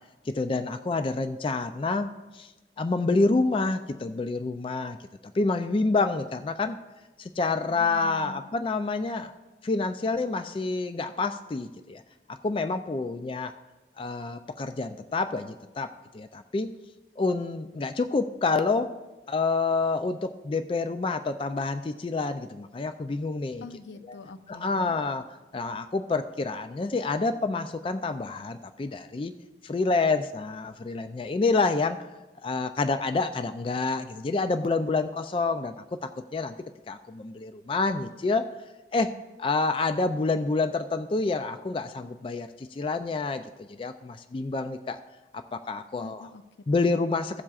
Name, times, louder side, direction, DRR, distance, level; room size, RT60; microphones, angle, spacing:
voice 1, 0.3-2.5 2.8-5.0 5.3-6.8 7.2-9.3 9.6-12.0 12.3-13.5 14.0-16.7 17.2-18.9 19.3-23.6 24.1-24.2 24.5-25.2 25.5-29.3 29.6-32.0 32.4-36.5 36.9-38.5 38.9-39.1 39.4-45.0 45.3-46.3 46.7-47.4, left 3 dB, 30° left, 9 dB, 0.3 m, -28 dB
voice 2, 7.7-8.4 23.6-25.0 45.9-47.1, left 2 dB, 85° left, 8 dB, 0.7 m, -45 dB
16.5 x 7.3 x 2.4 m, 1.1 s
head